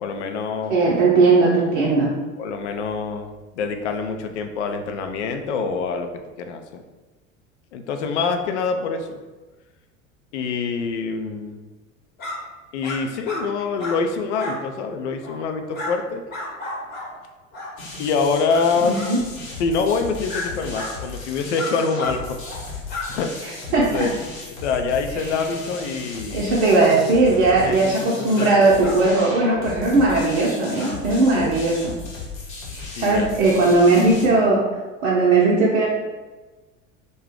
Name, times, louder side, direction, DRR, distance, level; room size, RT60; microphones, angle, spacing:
voice 1, 0.0-0.9 2.4-3.3 3.5-6.1 6.4-6.8 7.7-9.2 10.3-11.6 12.7-16.2 18.0-19.0 19.6-22.4 22.6-22.8 23.1-23.4 23.7-24.1 24.6-26.5 27.6-28.6 29.1-29.3 32.9-33.3 34.0-34.2, left 5 dB, 60° left, 6 dB, 0.5 m, -25 dB
voice 2, 0.7-2.1 18.8-19.2 23.4-24.1 26.3-31.9 32.7-34.6 35.0-35.9, right 3 dB, 60° right, -5 dB, 0.7 m, -18 dB
sound 1, 12.2-12.4 12.8-13.0 13.2-13.4 13.8-14.0 14.4-14.6 15.2-15.4 15.7-15.9 16.3-17.1 17.5-17.7 18.5-18.6 18.9-19.1 20.3-20.5 20.7-20.9 21.5-22.2 22.4-22.6 22.9-23.1 28.3-28.5 28.8-29.6 30.0-30.2 30.8-30.9, left 2 dB, 25° left, 1.0 m, -32 dB
sound 2, 17.8-34.3, left 3 dB, 75° left, 0.9 m, -36 dB
2.6 x 2.2 x 3.4 m, 1.2 s
figure-of-eight pair, 75°, 40 cm